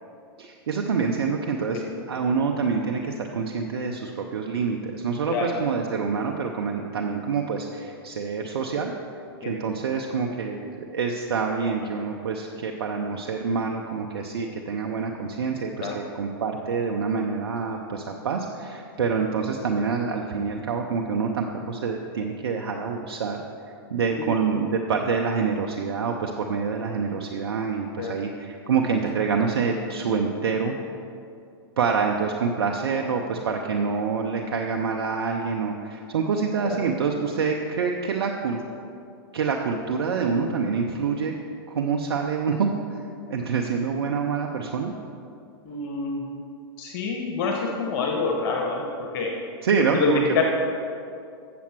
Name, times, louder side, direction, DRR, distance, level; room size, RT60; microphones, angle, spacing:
voice 1, 0.4-1.8 2.1-8.9 9.4-23.4 23.9-30.8 31.8-38.6 39.3-41.3 41.7-42.7 43.3-44.9 49.6-50.2, right 5 dB, 80° right, 2 dB, 0.7 m, -26 dB
voice 2, 45.6-46.3 46.8-49.3 49.9-50.4, left 4 dB, 55° left, 0 dB, 1.3 m, -27 dB
7.6 x 7.1 x 5.9 m, 2.5 s
hypercardioid pair, 115°, 13 cm